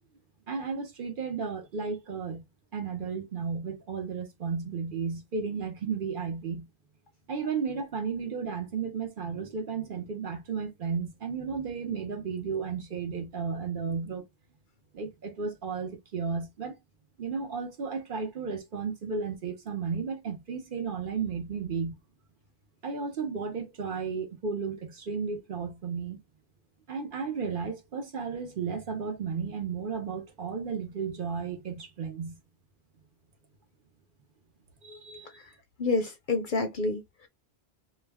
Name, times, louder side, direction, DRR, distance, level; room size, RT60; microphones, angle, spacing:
voice 1, 0.5-2.4 2.7-6.7 7.3-14.2 14.9-16.8 17.2-21.9 22.8-26.2 26.9-32.4 34.8-35.3, right 5 dB, 55° right, 0.8 m, -33 dB
voice 2, 35.8-37.3, left 3 dB, 55° left, 0.6 m, -29 dB
2.4 x 2.2 x 3.4 m
omnidirectional pair, 1.1 m